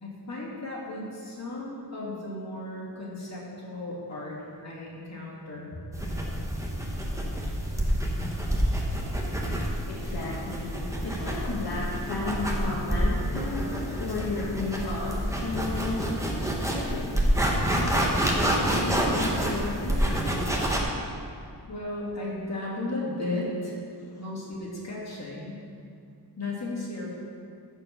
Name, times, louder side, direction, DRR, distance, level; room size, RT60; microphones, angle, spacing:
voice 1, 0.0-5.8 6.4-6.5 21.7-23.8 24.2-25.6 26.4-27.1, left 2 dB, 40° left, -6 dB, 2.6 m, -35 dB
sound 1, 5.9-20.8, equal, 10° right, 1.1 m, -28 dB
voice 2, 9.5-16.2 16.7-17.3 17.7-20.4 24.1-24.2, left 3 dB, 70° left, -5 dB, 1.3 m, -33 dB
14.0 x 4.6 x 6.0 m, 2.4 s
wide cardioid pair, 160°, 39 cm